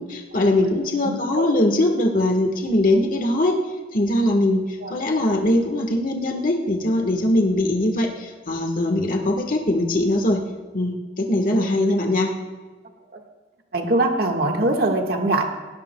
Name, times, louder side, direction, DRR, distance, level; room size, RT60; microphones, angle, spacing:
voice 1, 0.0-3.6 3.9-10.4 10.7-12.3, left 1 dB, 50° left, 2 dB, 1.4 m, -21 dB
voice 2, 1.0-1.5 4.8-4.9 11.6-11.7 13.1-13.2 13.7-15.4, right 2 dB, 60° right, 2 dB, 1.6 m, -22 dB
19.0 x 17.5 x 2.3 m, 1.4 s
head